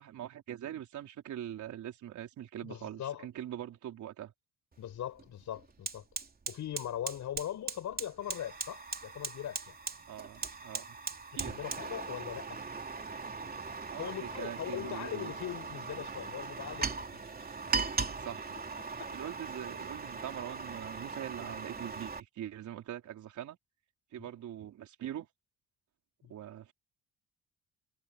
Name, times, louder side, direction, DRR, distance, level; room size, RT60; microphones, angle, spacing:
voice 1, 0.0-4.3 10.1-11.0 11.3-11.6 13.9-15.3 17.8-18.6 19.1-23.6 24.1-25.3 26.3-26.7, right 11 dB, 75° right, 4.4 m, -43 dB
voice 2, 2.6-3.3 4.8-6.0 6.5-9.7 11.3-12.6 14.0-17.2 24.2-24.3 26.2-26.3, left 11 dB, 70° left, 5.4 m, -40 dB
Fire, 4.7-4.9 5.2-22.2, right 4 dB, 30° right, 3.4 m, -39 dB
cardioid pair, 90°, 30 cm